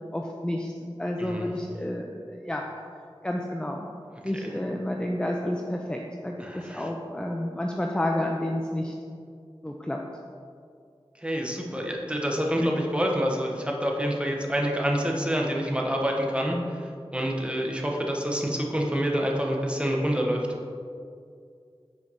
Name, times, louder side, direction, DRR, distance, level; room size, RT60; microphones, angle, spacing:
voice 1, 0.1-0.7 1.0-2.6 3.2-3.9 4.2-8.9 9.6-10.0, left 1 dB, 10° left, 1 dB, 0.5 m, -30 dB
voice 2, 1.2-1.5 4.4-4.5 6.4-6.9 11.2-16.6 17.1-20.5, equal, 10° right, 0 dB, 1.1 m, -27 dB
6.1 x 4.5 x 5.6 m, 2.3 s
wide cardioid pair, 55°, 10 cm